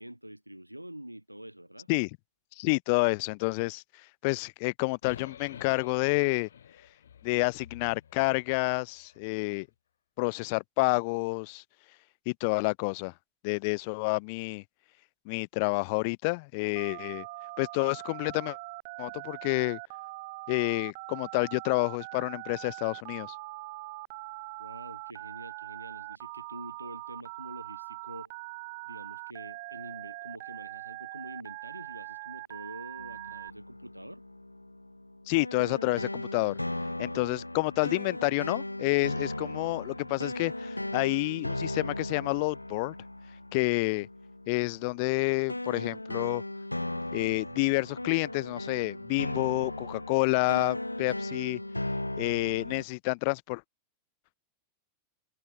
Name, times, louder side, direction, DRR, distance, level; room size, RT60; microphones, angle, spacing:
voice 1, 0.0-1.9 24.6-28.3 28.8-34.2, right 1 dB, 90° right, 3.5 m, -46 dB
voice 2, 2.6-3.8 4.2-6.5 7.2-9.7 10.2-11.6 12.3-13.1 13.4-14.6 15.3-17.3 17.6-18.6 19.0-19.8 20.5-23.3 35.3-36.6 37.0-42.9 43.5-44.1 44.5-46.4 47.1-51.6 52.2-53.6, left 31 dB, 45° left, 0.4 m, -29 dB
sound 1, 5.0-9.3, left 8 dB, 65° left, 1.9 m, -49 dB
Telephone, 16.8-33.5, right 24 dB, 50° right, 0.6 m, -42 dB
sound 2, 33.0-52.8, left 1 dB, 85° left, 1.2 m, -37 dB
figure-of-eight pair, 90°, 0 cm